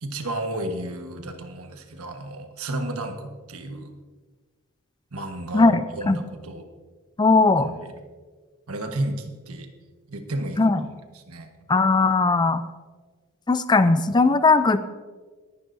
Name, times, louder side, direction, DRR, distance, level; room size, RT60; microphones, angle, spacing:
voice 1, 0.0-3.9 5.1-6.7 7.6-8.0 8.7-9.7 10.1-10.7 11.1-11.5, right 1 dB, 75° right, 5 dB, 1.3 m, -32 dB
voice 2, 5.5-6.2 7.2-7.7 10.6-10.8 11.7-12.6 13.5-14.8, left 3 dB, 20° left, 12 dB, 0.4 m, -18 dB
19.0 x 11.0 x 2.7 m, 1.4 s
head